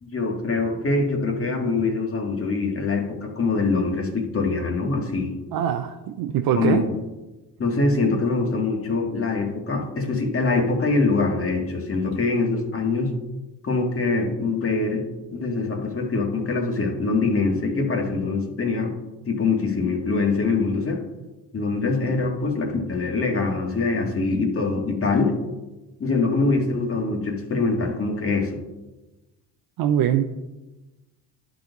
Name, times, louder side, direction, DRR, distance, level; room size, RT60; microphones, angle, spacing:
voice 1, 0.0-5.4 6.5-6.8 7.6-13.1 13.6-15.1 15.3-19.0 19.3-21.0 21.5-25.4 26.0-28.6, left 3 dB, 35° left, 2 dB, 1.8 m, -24 dB
voice 2, 5.5-6.9 29.8-30.2, right 10 dB, 70° right, 6 dB, 0.6 m, -22 dB
11.5 x 4.2 x 4.0 m, 1.1 s
supercardioid pair, 80°, 38 cm